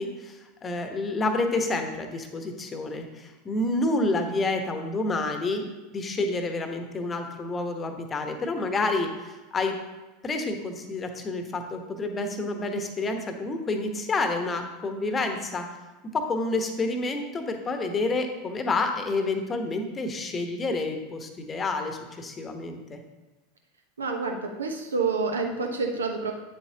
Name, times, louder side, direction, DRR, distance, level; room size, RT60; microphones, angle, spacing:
voice 1, 0.0-5.7 5.9-9.7 10.2-15.7 16.0-23.0, left 2 dB, 25° left, 6 dB, 1.0 m, -29 dB
voice 2, 24.0-26.3, right 4 dB, 80° right, 3 dB, 0.9 m, -28 dB
8.8 x 7.1 x 2.8 m, 1.1 s
figure-of-eight pair, 85°, 0 cm